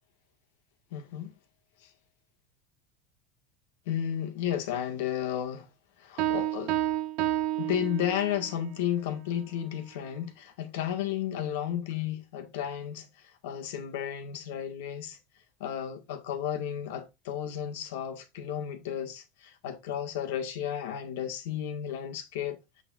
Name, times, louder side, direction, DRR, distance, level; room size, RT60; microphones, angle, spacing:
voice 1, 0.9-1.3 1.8-1.9 3.9-5.7 6.0-6.8 7.6-15.2 15.6-22.6, left 10 dB, 80° left, 1.8 m, -33 dB
Piano, 6.2-8.5, right 14 dB, 50° right, 0.9 m, -30 dB
7.8 x 6.9 x 2.5 m
supercardioid pair, 175°, 0 cm